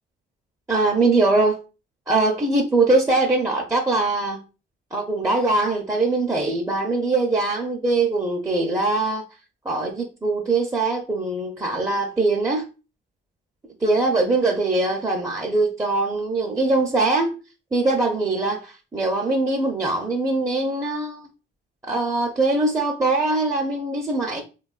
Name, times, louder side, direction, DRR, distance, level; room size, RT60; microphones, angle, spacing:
voice 1, 0.7-1.6 2.1-4.4 4.9-9.3 9.6-12.7 13.8-17.4 17.7-21.3 21.9-24.4, right 2 dB, 15° right, 0.5 m, -22 dB
3.3 x 2.3 x 2.3 m
cardioid pair, 90°, 20 cm